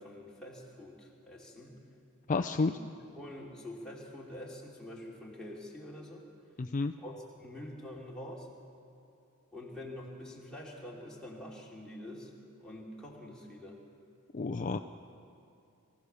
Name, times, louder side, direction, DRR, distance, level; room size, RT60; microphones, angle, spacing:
voice 1, 0.0-1.8 2.6-6.3 7.0-8.5 9.5-12.3 12.6-13.8, left 1 dB, 5° left, -5 dB, 3.2 m, -46 dB
voice 2, 2.3-2.7 6.6-6.9 14.3-14.8, left 3 dB, 35° left, 6 dB, 0.5 m, -30 dB
23.5 x 16.0 x 7.0 m, 2.6 s
head